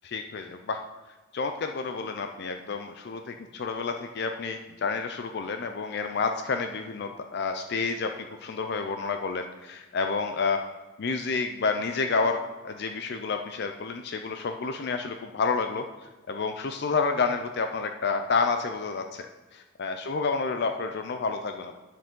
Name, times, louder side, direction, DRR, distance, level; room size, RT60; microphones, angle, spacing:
voice 1, 0.1-0.8 1.3-10.6 11.0-15.8 16.3-19.2 19.5-21.7, left 4 dB, 55° left, 6 dB, 0.5 m, -29 dB
9.4 x 7.5 x 3.7 m, 1.2 s
head